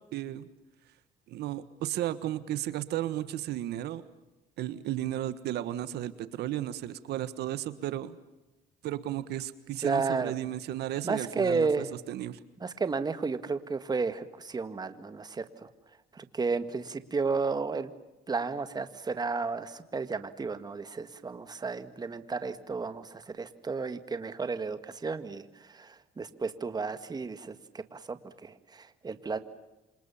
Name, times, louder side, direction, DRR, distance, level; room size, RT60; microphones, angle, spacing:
voice 1, 0.1-0.5 1.3-4.0 4.6-8.2 8.8-11.7 12.1-12.4, right 13 dB, 75° right, 14 dB, 1.4 m, -34 dB
voice 2, 9.8-10.4 11.0-11.9 12.6-15.7 16.1-17.9 18.3-29.4, right 4 dB, 25° right, 10 dB, 1.8 m, -33 dB
27.5 x 27.5 x 7.2 m, 1.0 s
cardioid pair, 110°, 17 cm